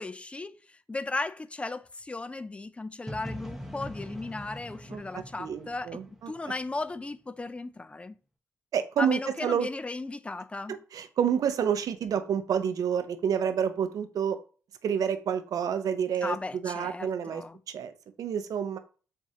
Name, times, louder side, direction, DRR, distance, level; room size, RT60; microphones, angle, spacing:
voice 1, 0.0-6.0 6.3-8.2 9.0-10.8 16.2-17.6, left 3 dB, 20° left, 0.4 m, -36 dB
sound 1, 3.1-6.9, equal, 5° right, 0.9 m, -42 dB
voice 2, 4.9-6.3 8.7-9.7 10.7-14.4 14.8-16.4 16.6-17.4 17.7-17.9 18.2-18.8, right 8 dB, 70° right, 0.6 m, -29 dB
7.2 x 2.5 x 2.8 m
cardioid pair, 65°, 6 cm